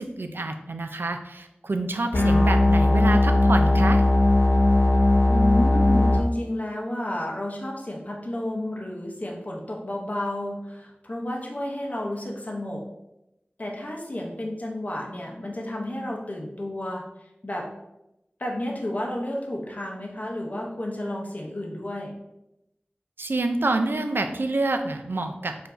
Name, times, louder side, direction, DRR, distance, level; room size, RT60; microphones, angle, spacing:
voice 1, 0.0-4.0 23.2-25.7, right 2 dB, 75° right, 6 dB, 0.3 m, -27 dB
sound 1, 2.1-6.2, left 1 dB, 85° left, 0.5 m, -18 dB
voice 2, 5.3-12.8 13.6-17.7 18.4-22.1, left 1 dB, 45° left, -1 dB, 0.6 m, -31 dB
4.6 x 2.5 x 2.5 m, 0.90 s
wide cardioid pair, 55°, 4 cm